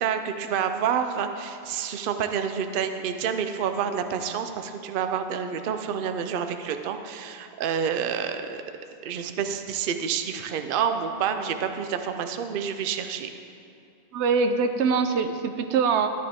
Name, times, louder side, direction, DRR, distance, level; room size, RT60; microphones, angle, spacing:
voice 1, 0.0-8.6 9.0-13.3, right 7 dB, 60° right, 7 dB, 0.7 m, -28 dB
voice 2, 14.1-16.1, right 5 dB, 85° right, 8 dB, 0.9 m, -23 dB
12.0 x 10.0 x 3.5 m, 2.6 s
omnidirectional pair, 1.1 m